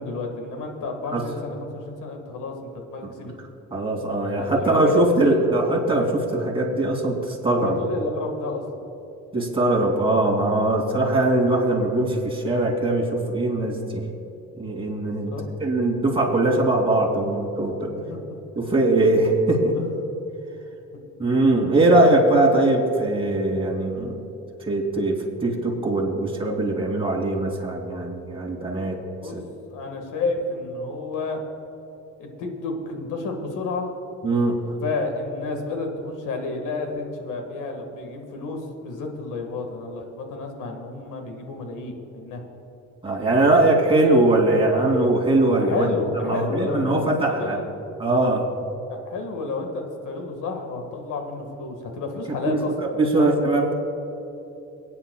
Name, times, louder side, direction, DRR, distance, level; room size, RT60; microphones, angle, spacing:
voice 1, 0.0-3.3 4.3-5.5 7.6-8.6 9.8-9.9 15.0-15.4 18.0-18.2 19.0-19.1 19.7-19.8 21.2-21.3 29.2-29.4 29.7-31.4 32.2-34.0 34.8-42.4 45.6-47.6 49.0-53.4, left 3 dB, 85° left, 4 dB, 1.8 m, -31 dB
voice 2, 3.7-7.8 9.3-14.0 14.6-15.3 15.6-17.9 18.6-19.8 21.2-24.2 24.7-29.0 29.3-29.4 34.2-34.6 43.0-45.9 46.2-47.6 48.0-48.5 52.3-52.6 53.0-53.7, right 2 dB, 20° right, -1 dB, 2.8 m, -21 dB
22.5 x 9.4 x 2.3 m, 2.9 s
cardioid pair, 90°, 30 cm